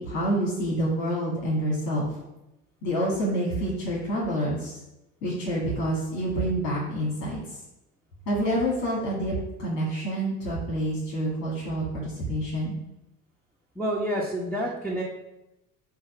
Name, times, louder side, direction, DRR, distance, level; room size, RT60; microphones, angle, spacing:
voice 1, 0.0-2.1 2.8-4.8 5.2-7.4 8.3-12.7, right 1 dB, 75° left, -6 dB, 2.4 m, -27 dB
voice 2, 13.7-15.0, equal, 5° left, -3 dB, 1.3 m, -28 dB
7.2 x 2.9 x 5.6 m, 0.95 s
hypercardioid pair, 65°, 46 cm